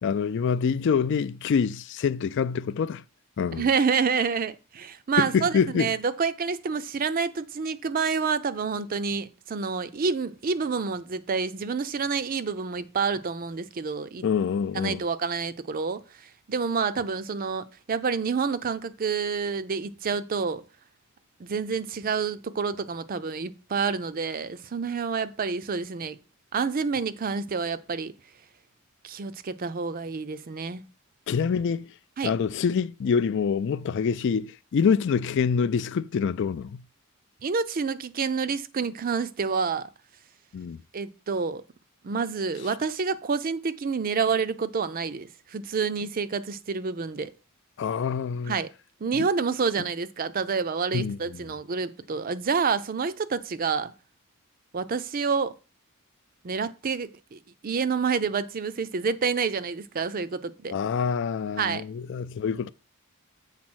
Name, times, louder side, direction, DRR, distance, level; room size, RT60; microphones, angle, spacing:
voice 1, 0.0-3.0 3.4-3.7 5.2-5.9 14.2-15.0 31.3-31.9 32.2-36.8 40.5-40.8 47.8-48.5 49.2-49.3 50.9-51.4 60.7-62.7, left 6 dB, 55° left, 0.3 m, -26 dB
voice 2, 3.5-14.2 14.7-16.0 16.5-20.6 21.4-26.2 26.5-28.1 29.0-30.8 32.2-32.3 37.4-39.9 40.9-41.6 42.0-47.3 48.5-48.7 49.0-53.9 54.7-55.5 56.4-60.7 61.6-61.8, right 5 dB, 40° right, 0.5 m, -28 dB
7.5 x 4.0 x 6.1 m
head